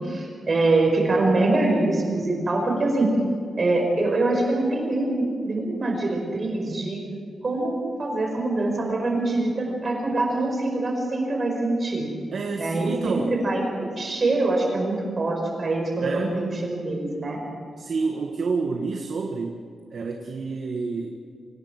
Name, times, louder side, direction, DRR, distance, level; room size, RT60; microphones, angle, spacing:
voice 1, 0.0-3.1 3.6-7.0 7.4-12.1 12.6-17.4, right 2 dB, 35° right, 1 dB, 5.2 m, -24 dB
voice 2, 12.3-13.4 16.0-16.4 17.8-19.6 19.9-21.2, right 4 dB, 50° right, 2 dB, 1.7 m, -28 dB
26.0 x 18.0 x 6.1 m, 2.1 s
wide cardioid pair, 180°, 0 cm